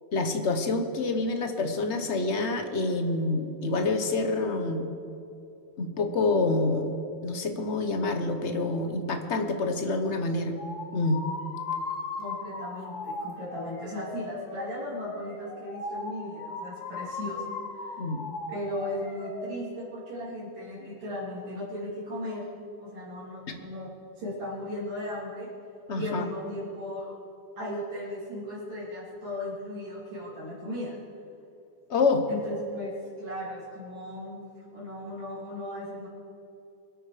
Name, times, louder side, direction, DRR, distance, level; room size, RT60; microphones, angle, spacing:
voice 1, 0.1-4.9 5.8-6.9 7.2-10.5 10.9-11.2 18.0-18.2 25.9-26.2 31.9-32.3, left 3 dB, 40° left, 6 dB, 1.2 m, -27 dB
sound 1, 10.6-19.5, left 3 dB, 70° left, 2.8 m, -37 dB
voice 2, 12.2-17.5 17.8-18.0 18.5-22.5 22.8-25.5 26.0-27.1 27.6-31.0 32.3-36.1, left 1 dB, 75° right, -7 dB, 4.0 m, -36 dB
23.5 x 8.7 x 5.0 m, 2.7 s
omnidirectional pair, 2.1 m